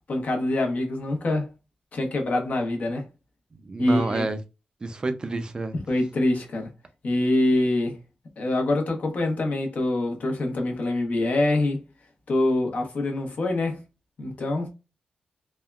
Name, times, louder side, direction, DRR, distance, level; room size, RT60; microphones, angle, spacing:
voice 1, 0.1-1.5 1.9-3.1 3.8-4.3 5.9-6.7 7.0-8.0 8.4-11.8 12.3-13.8 14.2-14.7, left 2 dB, 55° left, 0.9 m, -25 dB
voice 2, 3.5-4.4 4.8-5.7, right 2 dB, 30° right, 0.3 m, -28 dB
3.5 x 2.2 x 2.3 m
wide cardioid pair, 115°, 3 cm